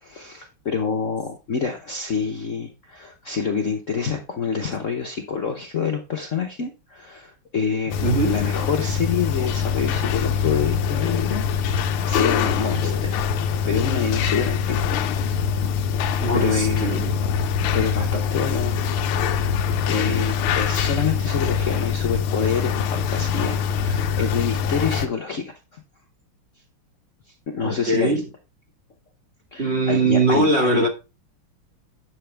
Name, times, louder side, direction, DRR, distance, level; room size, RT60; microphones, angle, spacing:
voice 1, 0.0-11.8 12.0-14.8 16.3-17.0 17.7-18.8 19.9-25.8 27.5-28.2 29.5-30.9, left 6 dB, 50° left, 1.0 m, -27 dB
sound 1, 7.9-25.1, left 7 dB, 90° left, 1.6 m, -23 dB
voice 2, 8.0-8.5 16.2-17.2 27.6-28.2 29.6-30.9, right 2 dB, 30° right, 2.0 m, -21 dB
9.2 x 6.9 x 3.4 m
omnidirectional pair, 2.3 m